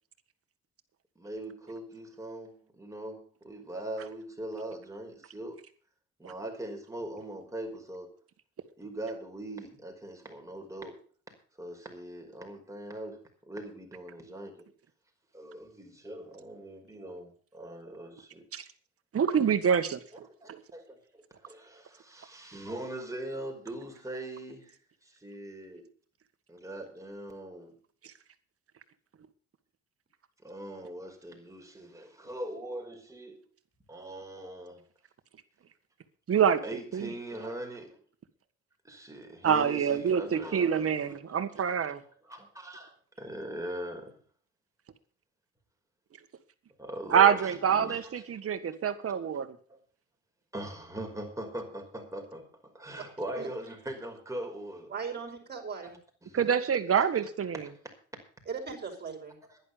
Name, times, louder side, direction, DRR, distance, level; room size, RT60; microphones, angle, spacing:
voice 1, 1.2-5.6 6.2-8.2 8.8-11.0 11.6-14.7 15.3-18.5 20.4-24.8 25.0-25.9 26.5-27.8 30.4-33.4 33.9-34.8 36.6-38.0 38.8-41.2 41.7-41.9 42.2-44.2 46.8-48.2 49.7-49.8 50.5-54.9 55.8-55.9 56.2-56.5 57.6-57.9 59.5-59.6, right 1 dB, 10° right, 5.3 m, -41 dB
voice 2, 19.1-20.0 20.5-20.6 36.3-36.6 36.9-37.1 39.4-42.0 47.1-49.6 56.3-57.6, right 7 dB, 50° right, 1.7 m, -26 dB
voice 3, 54.9-56.0 58.5-59.4, right 5 dB, 35° right, 5.4 m, -38 dB
11.0 x 11.0 x 6.9 m
cardioid pair, 90°, 30 cm